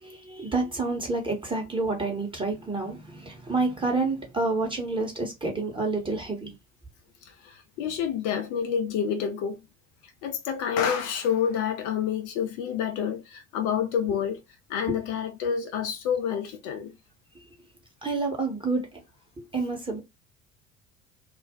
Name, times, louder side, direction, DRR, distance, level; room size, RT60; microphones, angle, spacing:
voice 1, 0.0-6.5 14.9-15.0 17.3-17.4 18.0-19.0 19.4-20.0, right 3 dB, 15° right, 1.2 m, -29 dB
voice 2, 7.2-9.6 10.2-14.4 14.7-16.9, left 8 dB, 55° left, 0.6 m, -28 dB
2.5 x 2.2 x 3.6 m
figure-of-eight pair, 60°, 37 cm